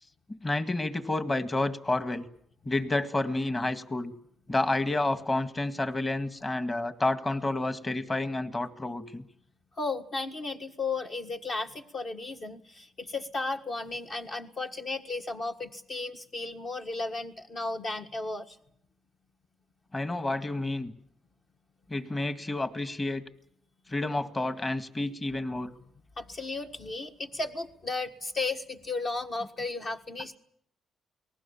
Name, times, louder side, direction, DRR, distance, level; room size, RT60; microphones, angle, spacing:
voice 1, 0.3-2.3 2.7-4.1 4.5-9.2 19.9-20.9 21.9-23.2 23.9-25.7, left 2 dB, 25° left, 9 dB, 1.9 m, -30 dB
voice 2, 9.8-18.6 26.2-30.4, left 3 dB, 45° left, 3 dB, 1.6 m, -34 dB
29.0 x 20.0 x 7.2 m, 0.70 s
cardioid pair, 90°, 0 cm